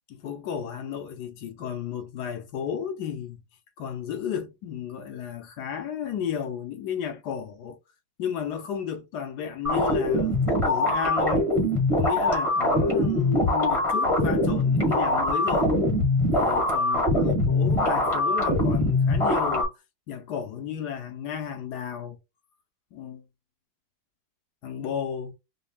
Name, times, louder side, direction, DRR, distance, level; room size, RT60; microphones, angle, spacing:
voice 1, 0.1-3.4 3.8-7.8 8.2-11.5 11.9-15.8 16.3-19.7 20.1-22.2 22.9-23.2 24.6-25.3, left 8 dB, 65° left, 1.2 m, -33 dB
sound 1, 9.6-19.6, left 1 dB, 20° left, 1.0 m, -23 dB
5.4 x 2.4 x 2.2 m
omnidirectional pair, 2.1 m